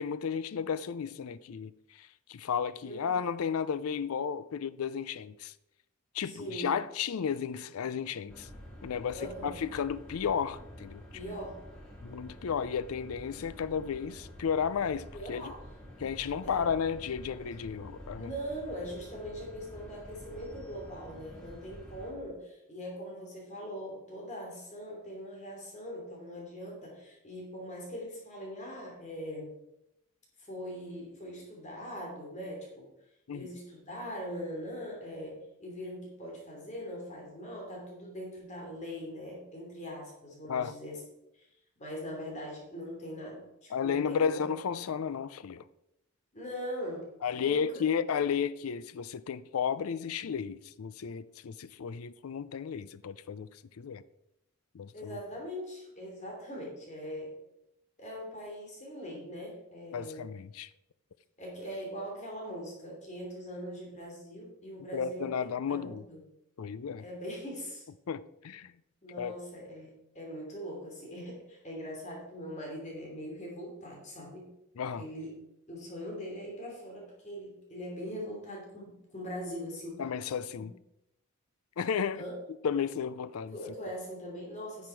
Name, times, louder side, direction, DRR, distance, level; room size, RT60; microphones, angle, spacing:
voice 1, 0.0-5.5 6.1-8.5 8.8-11.0 12.0-15.5 16.0-18.3 33.3-33.5 40.5-40.7 43.7-45.6 47.2-53.5 53.8-54.0 54.7-55.2 59.9-60.7 64.9-66.0 66.6-67.0 68.1-68.7 69.2-69.3 74.8-75.1 80.0-80.7 81.8-82.2 82.6-83.5, left 7 dB, 85° left, 0.4 m, -33 dB
voice 2, 2.8-3.3 6.2-6.8 9.1-9.6 11.1-11.6 15.1-15.6 16.4-16.7 18.2-29.6 30.4-32.9 33.3-41.0 41.3-41.5 41.8-44.4 46.3-47.1 47.4-47.8 54.9-57.3 58.0-60.3 61.4-65.3 65.7-66.2 67.0-67.8 69.0-74.5 74.9-75.3 75.7-80.0 80.5-80.6 82.2-82.3 83.5-84.9, equal, 35° left, 3.0 m, -41 dB
sound 1, 8.3-22.1, equal, 5° left, 2.5 m, -48 dB
10.5 x 7.0 x 4.5 m
head